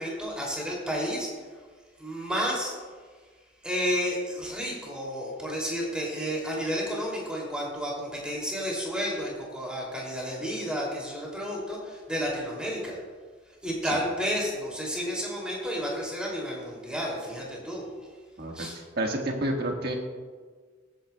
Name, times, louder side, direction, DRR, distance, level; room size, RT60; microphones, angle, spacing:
voice 1, 0.0-1.4 2.0-2.7 3.6-13.0 13.6-17.8 18.5-18.8, equal, 5° right, -4 dB, 2.7 m, -31 dB
voice 2, 19.0-20.0, right 1 dB, 55° right, 1 dB, 1.5 m, -29 dB
19.5 x 9.1 x 2.3 m, 1.5 s
head